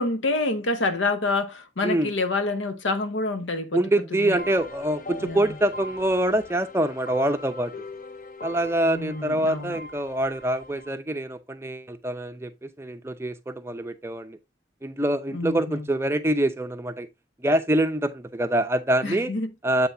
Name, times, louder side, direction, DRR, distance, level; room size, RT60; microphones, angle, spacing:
voice 1, 0.0-3.8 4.1-4.4 5.2-5.6 8.8-9.8 15.3-15.9 19.0-19.5, left 2 dB, 85° left, 1.0 m, -27 dB
voice 2, 3.7-7.7 8.4-14.4 14.8-17.1 17.4-19.3 19.6-19.9, right 1 dB, 15° right, 0.5 m, -25 dB
sound 1, 4.4-10.9, left 2 dB, 40° left, 0.6 m, -41 dB
7.9 x 5.7 x 2.7 m
head